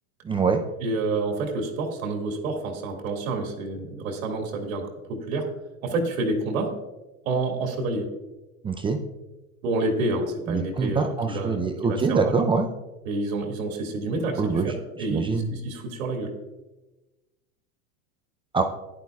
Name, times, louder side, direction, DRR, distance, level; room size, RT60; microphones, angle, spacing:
voice 1, 0.2-0.6 8.6-9.0 10.5-12.7 14.4-14.7 15.1-15.5 18.5-18.6, right 5 dB, 15° right, 4 dB, 0.4 m, -24 dB
voice 2, 0.8-5.5 5.8-6.7 7.2-8.1 9.6-12.4 13.0-16.3, right 2 dB, 80° right, 2 dB, 2.1 m, -28 dB
14.0 x 10.5 x 2.3 m, 1.1 s
hypercardioid pair, 115°, 41 cm